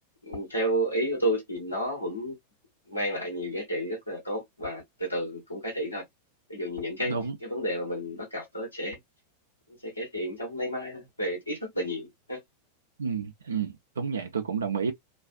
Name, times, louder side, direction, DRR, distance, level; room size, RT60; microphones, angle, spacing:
voice 1, 0.2-2.4 2.9-6.0 6.5-7.1 7.4-9.0 9.8-12.4, equal, 85° left, 1.0 m, -31 dB
voice 2, 7.0-7.3 13.0-14.9, right 6 dB, 70° right, 0.4 m, -30 dB
2.3 x 2.3 x 2.4 m
figure-of-eight pair, 90°, 0 cm